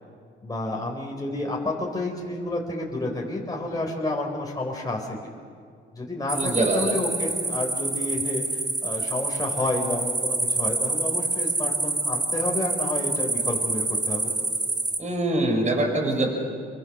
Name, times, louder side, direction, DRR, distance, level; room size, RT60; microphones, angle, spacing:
voice 1, 0.4-5.2 5.9-8.4 8.8-14.3, left 2 dB, 20° left, -1 dB, 4.1 m, -30 dB
sound 1, 6.3-15.0, right 3 dB, 20° right, 2.0 m, -27 dB
voice 2, 6.3-7.0 15.0-16.3, right 2 dB, 35° right, 3 dB, 5.5 m, -24 dB
27.0 x 23.0 x 6.3 m, 2.2 s
cardioid pair, 90°, 20 cm